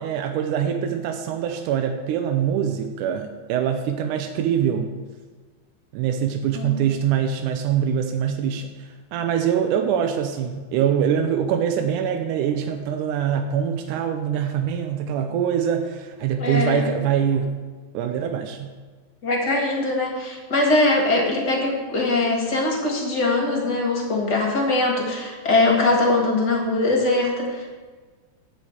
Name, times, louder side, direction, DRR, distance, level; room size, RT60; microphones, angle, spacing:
voice 1, 0.0-4.9 5.9-8.7 9.1-17.6 17.9-18.7, right 8 dB, 80° right, 5 dB, 1.9 m, -24 dB
voice 2, 6.5-6.8 16.4-16.9 19.2-27.7, left 2 dB, 35° left, -1 dB, 1.8 m, -22 dB
12.0 x 4.9 x 8.1 m, 1.4 s
omnidirectional pair, 4.3 m